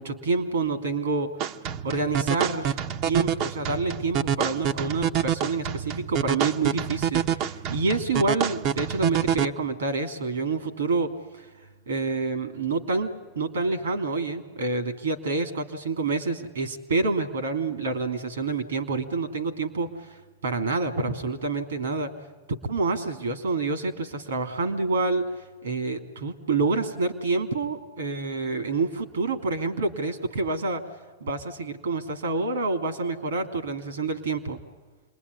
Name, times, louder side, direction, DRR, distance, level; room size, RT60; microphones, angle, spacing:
voice 1, 0.0-1.3 1.8-11.4 11.9-20.2 20.4-22.1 22.5-25.3 25.6-30.8 31.2-34.6, right 3 dB, 80° right, 7 dB, 3.0 m, -28 dB
sound 1, 1.4-9.5, right 9 dB, 50° right, 1.1 m, -27 dB
28.0 x 21.5 x 9.8 m, 1.3 s
hypercardioid pair, 100°, 0 cm